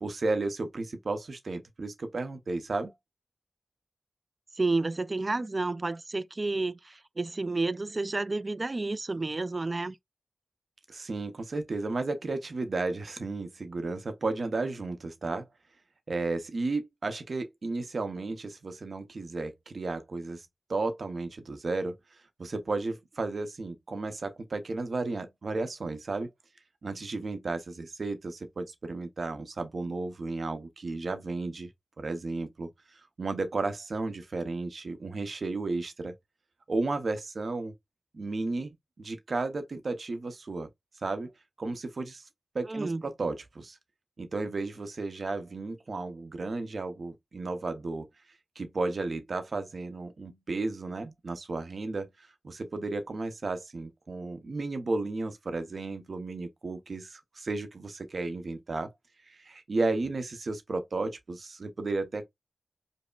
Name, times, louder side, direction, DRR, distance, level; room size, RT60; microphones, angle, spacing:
voice 1, 0.0-2.9 10.9-15.5 16.1-22.0 22.4-26.3 26.8-31.7 32.0-36.2 36.7-37.7 38.1-40.7 41.0-41.3 41.6-42.2 42.5-43.8 44.2-48.1 48.6-58.9 59.3-62.2, right 3 dB, 70° right, 0.7 m, -33 dB
voice 2, 4.6-10.0 42.7-43.0, right 3 dB, 45° right, 0.3 m, -30 dB
5.3 x 2.0 x 2.3 m
cardioid pair, 50°, 0 cm